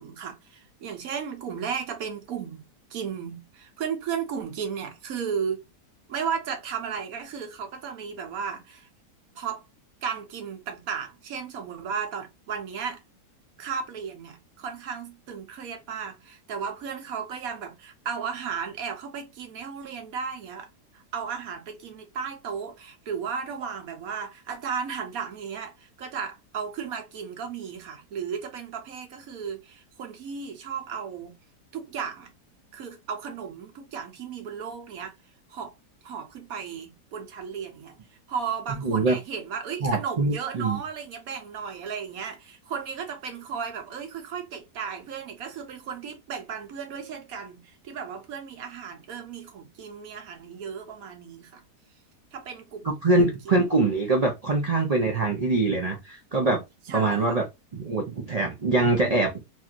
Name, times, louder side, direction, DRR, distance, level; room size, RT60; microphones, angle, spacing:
voice 1, 0.0-2.6 2.9-5.6 6.1-8.9 9.3-9.6 10.0-13.0 13.6-20.7 20.9-31.4 31.7-32.3 32.7-35.1 35.5-35.7 36.0-38.0 38.3-51.6 52.3-53.7 56.9-57.4, right 6 dB, 65° right, 1.2 m, -35 dB
voice 2, 38.8-39.2 39.8-40.8 52.8-56.6 56.9-57.5 57.7-59.3, right 3 dB, 85° right, 0.3 m, -23 dB
3.1 x 2.7 x 2.3 m
omnidirectional pair, 1.7 m